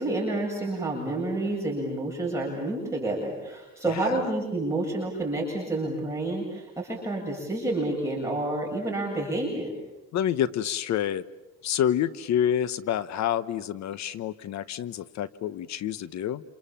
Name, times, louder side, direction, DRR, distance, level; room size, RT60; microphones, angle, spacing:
voice 1, 0.0-9.7, right 2 dB, 10° right, -3 dB, 7.7 m, -29 dB
voice 2, 3.8-4.3 10.1-11.2 11.6-16.4, left 10 dB, 70° left, 15 dB, 1.1 m, -28 dB
28.5 x 28.0 x 7.4 m, 1.0 s
cardioid pair, 105°, 29 cm